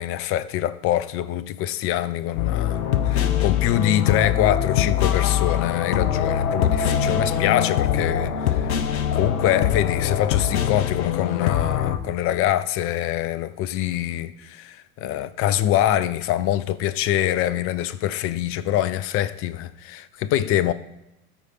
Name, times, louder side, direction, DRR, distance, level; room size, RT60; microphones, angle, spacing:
voice 1, 0.0-8.7 9.1-20.7, left 12 dB, 30° left, 0.5 m, -24 dB
sound 1, 2.4-12.0, left 9 dB, 70° left, 0.8 m, -23 dB
13.0 x 4.8 x 4.2 m
figure-of-eight pair, 70°, 45 cm